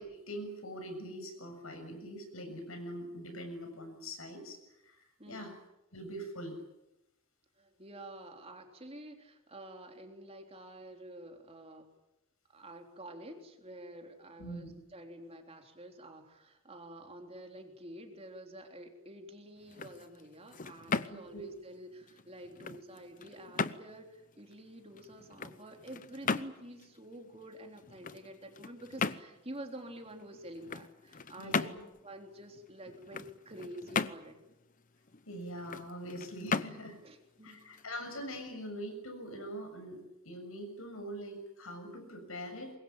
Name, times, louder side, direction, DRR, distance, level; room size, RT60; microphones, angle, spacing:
voice 1, 0.0-4.6 4.8-5.5 5.9-6.6 14.4-14.7 21.1-21.5 31.4-31.8 35.3-37.0 37.4-42.7, equal, 80° left, 6 dB, 6.9 m, -43 dB
voice 2, 7.6-11.9 12.5-31.7 32.0-34.4 37.0-37.8, right 1 dB, 30° right, 4 dB, 3.5 m, -49 dB
sound 1, 19.6-38.4, left 4 dB, 40° left, 0.8 m, -39 dB
24.5 x 22.0 x 8.8 m, 0.92 s
head